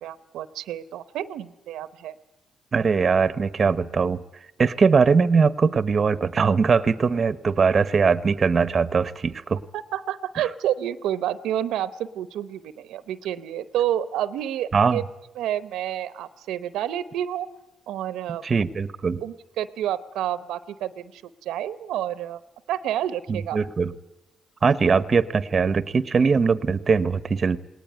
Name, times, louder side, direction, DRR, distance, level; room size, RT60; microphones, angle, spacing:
voice 1, 0.0-2.1 9.7-15.0 15.4-17.5 17.9-18.4 19.2-22.4 22.7-23.6, right 11 dB, 85° right, 16 dB, 0.8 m, -29 dB
voice 2, 2.7-4.2 4.6-9.6 10.4-10.5 14.7-15.0 18.4-19.2 23.3-23.9 24.6-27.6, right 5 dB, 40° right, 17 dB, 0.9 m, -21 dB
19.0 x 19.0 x 9.4 m, 0.93 s
cardioid pair, 90°, 0 cm